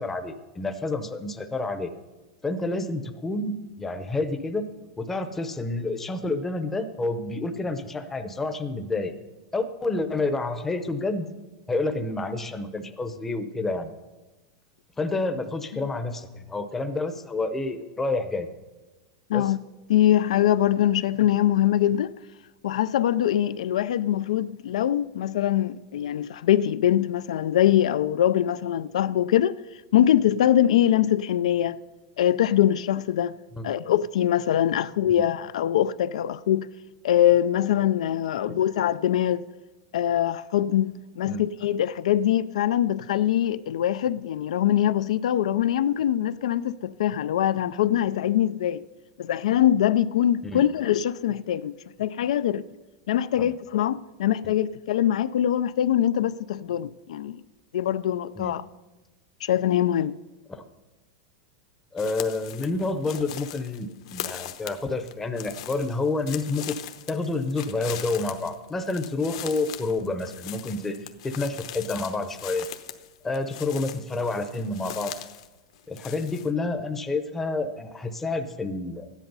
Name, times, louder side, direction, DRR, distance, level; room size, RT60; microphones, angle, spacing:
voice 1, 0.0-1.9 2.4-4.7 5.0-9.2 9.5-11.3 11.7-13.9 15.0-18.5 19.3-19.5 33.6-33.8 35.1-35.2 38.5-38.6 41.2-41.5 50.4-50.6 53.4-53.5 58.4-58.6 60.5-60.6 61.9-66.8 67.1-72.7 73.2-75.1 75.9-79.1, left 3 dB, 10° left, 0.7 m, -29 dB
voice 2, 19.9-22.1 22.6-29.6 29.9-31.8 32.2-33.3 33.6-36.7 37.0-39.4 39.9-48.8 49.2-52.6 53.1-57.4 57.7-58.6 59.4-60.2, left 11 dB, 90° left, 0.4 m, -23 dB
sound 1, 62.0-75.5 75.7-76.5, left 12 dB, 60° left, 0.9 m, -40 dB
13.5 x 10.5 x 5.5 m
supercardioid pair, 170°, 3 cm